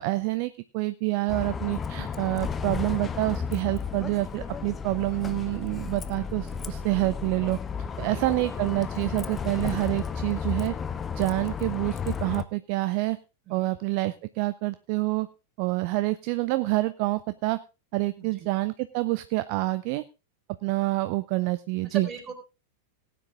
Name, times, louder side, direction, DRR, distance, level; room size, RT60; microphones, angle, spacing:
voice 1, 0.0-7.6 8.0-10.7 11.1-13.2 13.5-15.3 15.6-17.6 17.9-20.0 20.6-22.1, right 20 dB, 45° right, 13 dB, 0.6 m, -27 dB
Bus, 1.3-12.4, left 6 dB, 20° left, 0.8 m, -33 dB
voice 2, 8.0-8.4 13.5-13.7 18.2-18.5 21.8-22.3, right 7 dB, 25° right, 2 dB, 4.2 m, -38 dB
17.5 x 9.3 x 3.6 m, 0.29 s
figure-of-eight pair, 90°, 0 cm